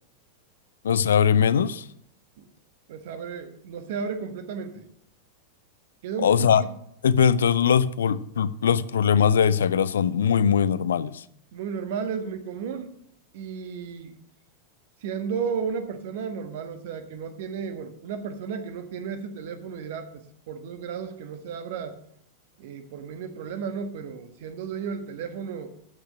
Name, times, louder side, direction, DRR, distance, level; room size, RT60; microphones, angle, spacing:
voice 1, 0.8-1.8 6.2-6.6 7.0-11.2, left 7 dB, 65° left, 0.5 m, -21 dB
voice 2, 2.9-4.9 6.0-6.7 11.5-12.9 13.3-14.1 15.0-22.0 22.6-25.7, right 6 dB, 55° right, 1.4 m, -33 dB
12.5 x 6.5 x 6.3 m
figure-of-eight pair, 90°, 0 cm